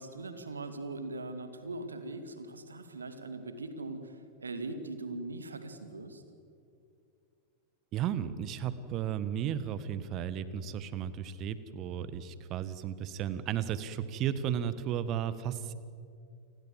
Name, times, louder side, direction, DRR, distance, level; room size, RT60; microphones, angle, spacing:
voice 1, 0.0-6.2, right 2 dB, 75° right, 9 dB, 2.3 m, -41 dB
voice 2, 7.9-15.7, right 9 dB, 35° right, 14 dB, 1.5 m, -34 dB
29.5 x 20.5 x 7.6 m, 2.4 s
figure-of-eight pair, 90°, 0 cm